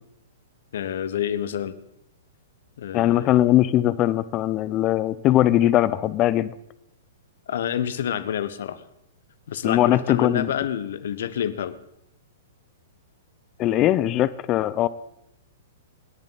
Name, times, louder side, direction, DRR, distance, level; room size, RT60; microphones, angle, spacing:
voice 1, 0.7-1.7 2.8-3.3 7.5-8.8 9.5-11.8, left 9 dB, 60° left, 15 dB, 1.1 m, -28 dB
voice 2, 2.9-6.5 9.6-10.5 13.6-14.9, left 13 dB, 30° left, 16 dB, 0.6 m, -20 dB
26.5 x 10.5 x 4.1 m, 0.82 s
figure-of-eight pair, 110°, 0 cm